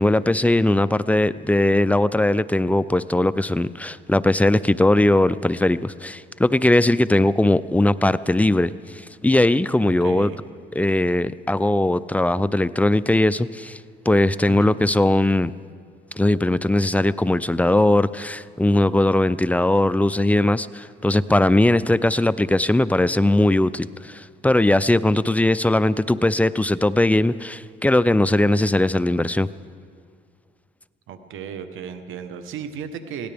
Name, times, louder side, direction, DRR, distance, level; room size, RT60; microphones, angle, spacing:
voice 1, 0.0-10.3 10.8-13.8 14.1-15.5 16.2-29.5, left 1 dB, 5° left, 15 dB, 0.4 m, -19 dB
voice 2, 9.8-10.4 14.5-14.8 31.1-33.3, right 7 dB, 85° right, 9 dB, 1.1 m, -35 dB
22.0 x 17.0 x 3.5 m, 2.1 s
cardioid pair, 90°, 20 cm